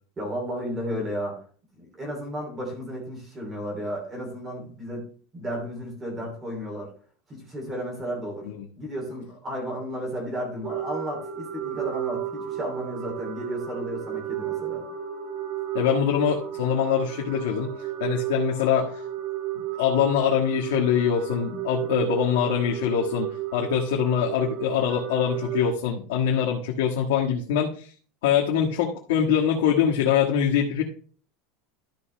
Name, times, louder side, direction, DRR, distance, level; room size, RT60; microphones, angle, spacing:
voice 1, 0.2-1.4 1.8-5.1 5.3-6.9 7.3-8.5 8.8-14.9, equal, 15° right, -1 dB, 3.1 m, -33 dB
sound 1, 10.6-25.7, right 10 dB, 40° right, 1.1 m, -33 dB
voice 2, 15.7-19.0 19.8-27.9 28.2-30.8, left 8 dB, 85° left, -2 dB, 1.5 m, -24 dB
12.5 x 5.9 x 3.3 m, 0.42 s
supercardioid pair, 170°, 0 cm